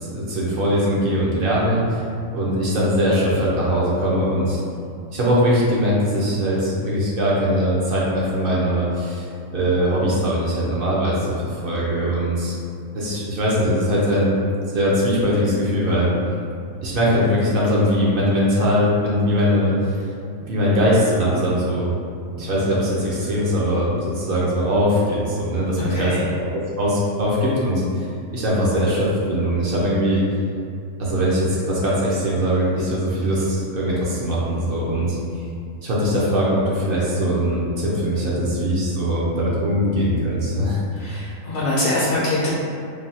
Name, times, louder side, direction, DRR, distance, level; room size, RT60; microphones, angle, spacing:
voice 1, 0.0-2.0 2.3-4.6 5.1-12.5 12.9-14.4 14.7-16.1 16.8-20.0 20.4-21.9 22.4-26.1 26.5-28.1 28.3-30.2 31.0-35.2 35.8-40.8, equal, 55° right, -6 dB, 0.7 m, -21 dB
voice 2, 25.8-26.2 35.0-35.1 40.9-42.5, left 1 dB, 65° left, -8 dB, 0.8 m, -24 dB
3.3 x 2.2 x 2.6 m, 2.4 s
omnidirectional pair, 1.4 m